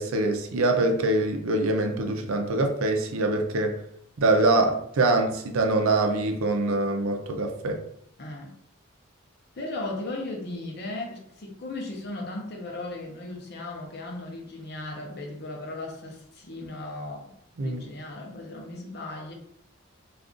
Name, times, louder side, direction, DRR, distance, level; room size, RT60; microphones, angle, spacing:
voice 1, 0.0-3.8 4.2-7.8 17.6-17.8, right 2 dB, 80° right, 4 dB, 0.5 m, -24 dB
voice 2, 8.2-8.6 9.6-17.3 17.6-19.3, left 2 dB, 50° left, 1 dB, 0.6 m, -36 dB
2.5 x 2.4 x 3.6 m, 0.70 s
head